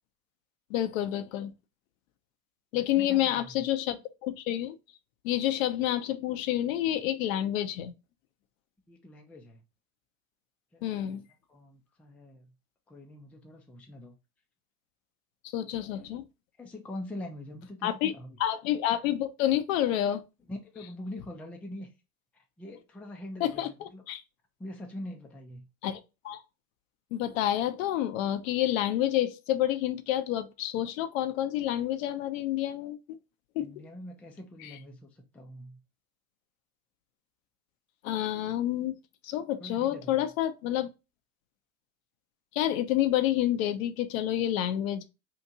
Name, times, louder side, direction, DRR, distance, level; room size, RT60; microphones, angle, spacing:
voice 1, 0.7-1.5 2.7-4.8 5.2-7.9 10.8-11.2 15.5-16.2 17.8-18.1 18.4-20.2 23.4-24.2 25.8-26.4 27.1-33.2 33.6-33.7 34.6-34.7 38.0-39.0 39.2-40.9 42.5-45.0, left 12 dB, 60° left, 0.6 m, -29 dB
voice 2, 2.7-3.7 8.9-9.6 10.7-11.2 11.5-12.5 12.9-14.2 15.9-16.1 16.6-18.4 20.5-21.9 22.3-24.0 24.6-25.6 33.6-35.8 39.6-40.3, left 1 dB, 5° left, 0.4 m, -44 dB
2.9 x 2.5 x 3.7 m
hypercardioid pair, 85°, 45 cm